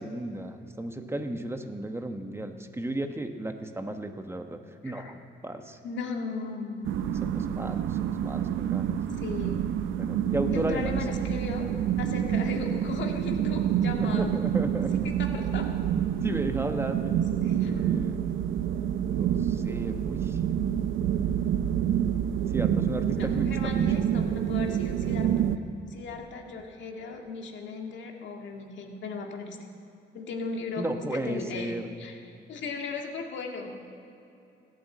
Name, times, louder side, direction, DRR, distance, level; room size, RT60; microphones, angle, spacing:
voice 1, 0.0-5.8 7.2-9.0 10.0-11.0 14.0-15.0 16.2-17.0 17.6-18.2 19.1-20.4 22.5-23.8 30.8-31.9, right 1 dB, 10° right, 6 dB, 1.1 m, -34 dB
voice 2, 5.8-6.9 9.2-9.7 10.5-11.7 12.0-14.3 14.7-15.7 17.4-17.7 23.1-25.3 25.9-29.6 30.1-32.2 32.5-33.8, left 4 dB, 70° left, 2 dB, 2.0 m, -37 dB
sound 1, 6.8-25.6, right 9 dB, 80° right, 0.7 m, -27 dB
15.5 x 9.3 x 7.7 m, 2.8 s
cardioid pair, 90°, 20 cm